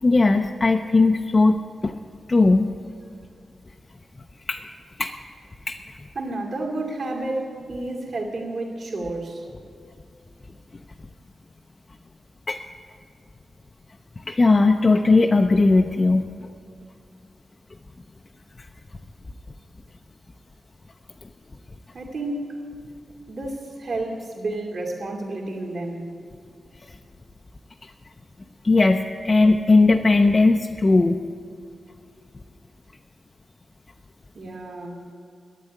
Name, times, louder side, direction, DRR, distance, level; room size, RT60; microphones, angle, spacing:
voice 1, 0.0-2.0 2.3-2.7 4.5-4.6 5.0-5.1 5.7-5.8 12.5-12.6 14.3-16.3 28.6-31.2, left 3 dB, 25° left, 4 dB, 0.4 m, -18 dB
voice 2, 6.1-9.4 21.9-22.6 23.3-26.1 34.3-35.0, right 2 dB, 55° right, 0 dB, 2.4 m, -31 dB
12.0 x 9.2 x 9.8 m, 2.4 s
wide cardioid pair, 160°, 0 cm